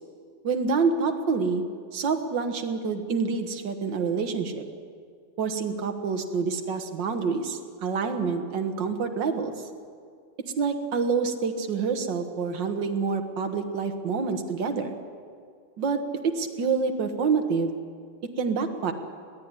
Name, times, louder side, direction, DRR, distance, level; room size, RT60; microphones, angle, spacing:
voice 1, 0.4-1.6 1.9-4.6 5.4-9.5 10.6-14.9 15.8-17.7 18.4-18.9, right 5 dB, 80° right, 6 dB, 2.1 m, -27 dB
21.0 x 15.5 x 9.7 m, 2.2 s
omnidirectional pair, 2.0 m